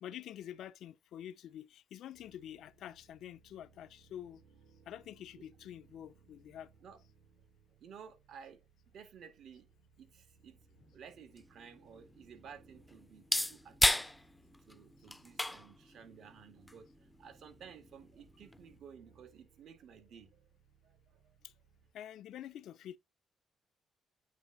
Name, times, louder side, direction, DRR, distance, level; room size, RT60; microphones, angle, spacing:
voice 1, 0.0-4.4 4.9-6.7 21.9-23.0, left 11 dB, 75° left, 0.5 m, -47 dB
sound 1, 2.1-21.9, right 5 dB, 90° right, 3.2 m, -67 dB
voice 2, 7.8-8.6 8.9-9.7 10.0-10.6 10.9-14.1 14.7-20.4 20.8-21.4, right 7 dB, 70° right, 2.0 m, -54 dB
sound 2, 10.8-18.8, left 1 dB, 10° left, 0.5 m, -37 dB
9.0 x 3.4 x 3.9 m
cardioid pair, 90°, 0 cm